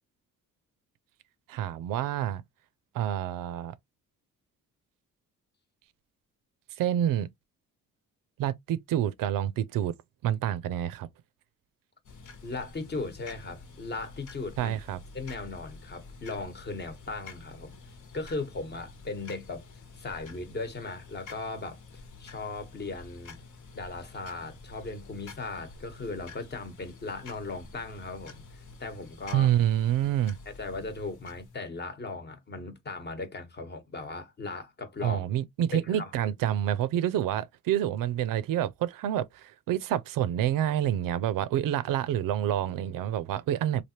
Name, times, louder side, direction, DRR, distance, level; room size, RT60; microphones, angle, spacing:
voice 1, 1.5-2.4 2.9-3.7 6.8-7.3 8.4-9.9 10.2-11.1 14.6-15.0 29.3-30.4 35.0-43.8, right 11 dB, 80° right, 0.5 m, -28 dB
sound 1, 12.0-31.6, left 3 dB, 65° left, 1.2 m, -49 dB
voice 2, 12.4-14.8 15.1-17.7 18.1-19.6 19.9-21.8 22.2-23.4 23.7-29.5 30.6-35.2 35.7-36.3, left 3 dB, 30° left, 1.0 m, -37 dB
3.3 x 2.5 x 2.8 m
cardioid pair, 115°, 33 cm